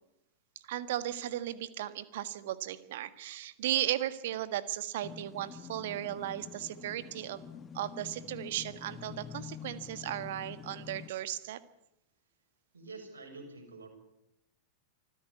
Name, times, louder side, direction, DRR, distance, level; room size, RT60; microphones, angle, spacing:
voice 1, 0.7-7.5 7.7-11.6, right 13 dB, 55° right, 14 dB, 1.6 m, -36 dB
sound 1, 5.0-11.1, left 7 dB, 20° left, 1.7 m, -47 dB
voice 2, 12.7-13.9, right 3 dB, 70° right, 3 dB, 6.5 m, -47 dB
25.5 x 15.5 x 9.7 m, 0.80 s
figure-of-eight pair, 90°, 0 cm